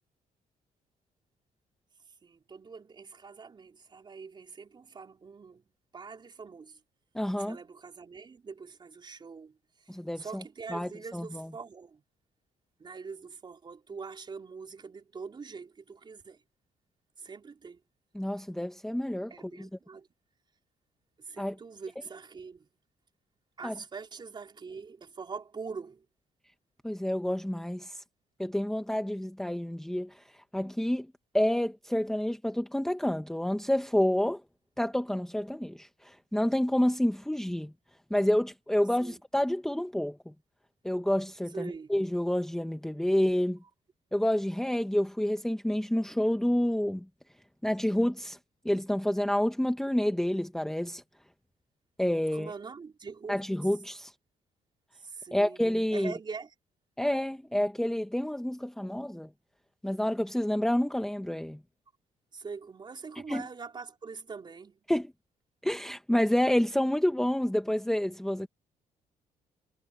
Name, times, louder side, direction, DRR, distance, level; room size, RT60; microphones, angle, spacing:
voice 1, 2.2-5.6 5.9-6.8 7.4-12.0 12.8-16.4 17.2-17.8 19.3-20.1 21.2-22.7 23.6-26.0 39.0-39.2 41.5-41.9 52.3-53.5 54.9-55.6 55.9-56.5 62.3-64.8, right 5 dB, 35° right, 4.5 m, -43 dB
voice 2, 7.1-7.6 9.9-10.4 10.7-11.5 18.1-19.7 21.4-21.5 23.6-23.8 26.8-28.0 28.4-30.2 30.5-31.1 31.3-34.4 34.8-37.7 38.1-40.3 40.8-43.6 44.1-47.0 47.6-48.4 48.6-51.0 52.0-52.5 53.3-54.1 55.3-56.1 57.0-59.3 59.8-61.6 63.3-63.5 64.9-65.1 65.6-68.5, left 1 dB, 5° left, 1.1 m, -29 dB
cardioid pair, 115°, 14 cm